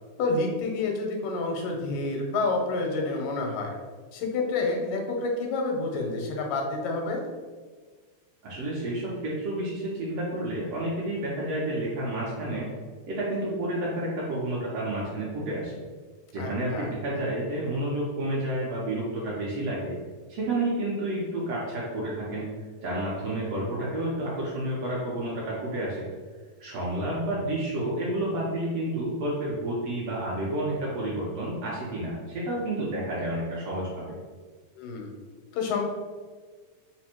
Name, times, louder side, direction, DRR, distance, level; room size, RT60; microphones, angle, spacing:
voice 1, 0.2-3.7 4.1-7.2 16.4-16.9 34.8-35.1 35.5-35.8, left 3 dB, 90° left, 1 dB, 2.3 m, -28 dB
voice 2, 8.4-12.7 13.1-15.8 16.3-19.9 20.3-22.5 22.8-26.0 26.6-34.2, right 1 dB, 75° right, -6 dB, 1.5 m, -30 dB
5.0 x 2.1 x 4.3 m, 1.5 s
omnidirectional pair, 3.5 m